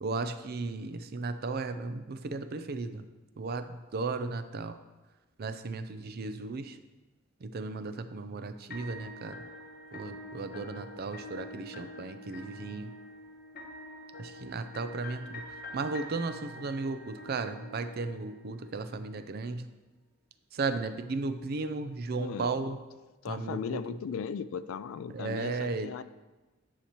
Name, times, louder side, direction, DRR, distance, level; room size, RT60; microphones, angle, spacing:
voice 1, 0.0-3.0 3.4-4.8 5.4-6.8 7.4-9.4 9.9-12.9 14.2-15.4 15.7-19.7 20.5-22.8 23.3-23.8 25.1-25.9, right 3 dB, 50° right, 9 dB, 0.4 m, -35 dB
sound 1, 8.7-18.7, left 1 dB, 50° left, 0.9 m, -46 dB
voice 2, 22.1-22.5 23.2-26.0, left 6 dB, 85° left, 15 dB, 0.3 m, -37 dB
9.8 x 5.8 x 2.9 m, 1.1 s
head